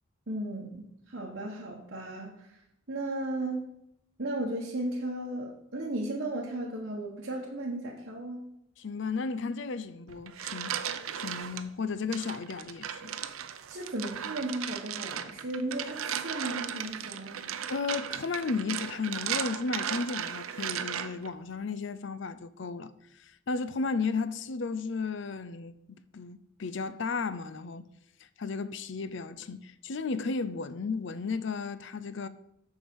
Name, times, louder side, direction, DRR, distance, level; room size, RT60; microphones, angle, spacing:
voice 1, 0.3-2.5 2.9-3.7 4.2-8.4 13.7-17.4, right 1 dB, 55° right, 1.3 m, -35 dB
voice 2, 8.8-10.7 11.2-13.2 17.7-22.9 23.2-27.9 28.4-32.3, left 4 dB, 60° left, 0.5 m, -34 dB
sound 1, 10.1-11.6 12.1-21.3, right 9 dB, 85° right, 0.6 m, -36 dB
7.2 x 4.9 x 7.1 m
head